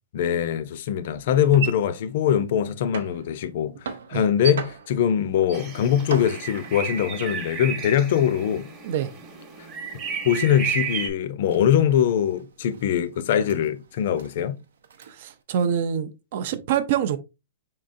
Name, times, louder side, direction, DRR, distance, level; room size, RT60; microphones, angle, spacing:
voice 1, 0.1-8.7 10.2-14.6, left 9 dB, 45° left, 0.5 m, -22 dB
sound 1, 0.9-8.7 9.0-15.4, right 6 dB, 80° right, 0.7 m, -40 dB
sound 2, 5.5-11.1, right 6 dB, 20° right, 1.0 m, -33 dB
voice 2, 15.1-17.2, right 8 dB, 45° right, 0.5 m, -25 dB
4.6 x 3.7 x 2.5 m
hypercardioid pair, 170°, 0 cm